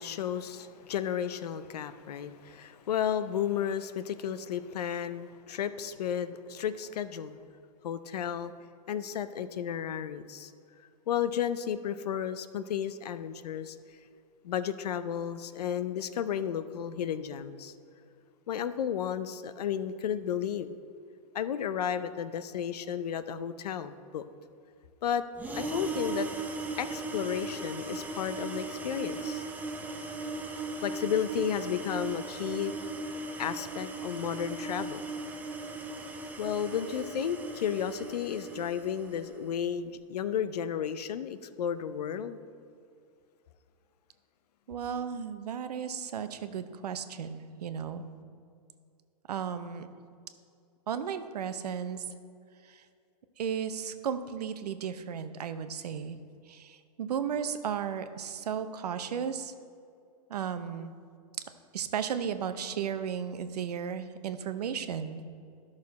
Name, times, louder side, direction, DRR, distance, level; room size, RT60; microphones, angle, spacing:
voice 1, 0.0-7.4 7.8-8.5 8.9-10.5 11.1-13.8 14.4-17.7 18.5-20.8 21.3-24.2 25.0-25.3 25.5-26.3 26.8-29.4 30.8-32.7 33.4-35.1 36.4-42.4, left 9 dB, 85° left, 12 dB, 0.6 m, -33 dB
sound 1, 25.4-39.3, right 3 dB, 10° right, 0.6 m, -38 dB
voice 2, 44.7-48.0 49.3-49.9 50.9-52.0 52.7-52.8 53.4-56.2 56.5-59.5 60.3-60.9 61.7-65.2, right 7 dB, 90° right, 10 dB, 0.7 m, -34 dB
11.5 x 6.4 x 4.2 m, 2.4 s
hypercardioid pair, 135°, 20 cm